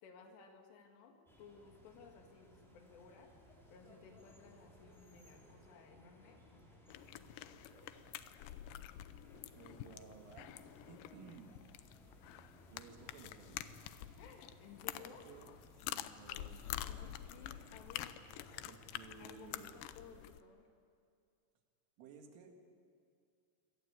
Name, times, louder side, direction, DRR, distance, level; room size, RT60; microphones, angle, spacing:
voice 1, 0.0-3.4 3.7-7.7 8.1-8.2 14.2-15.3 16.9-18.1 19.2-20.7, left 6 dB, 65° left, 4 dB, 3.9 m, -58 dB
sound 1, 1.3-20.0, equal, ahead, 4.3 m, -62 dB
sound 2, 6.9-20.4, left 13 dB, 80° left, 2.7 m, -48 dB
voice 2, 9.3-10.5 10.9-11.6 12.7-13.7 15.0-15.6 15.9-16.7 18.5-19.8 22.0-22.6, right 6 dB, 75° right, 3 dB, 4.6 m, -56 dB
25.5 x 18.0 x 8.6 m, 2.4 s
omnidirectional pair, 5.8 m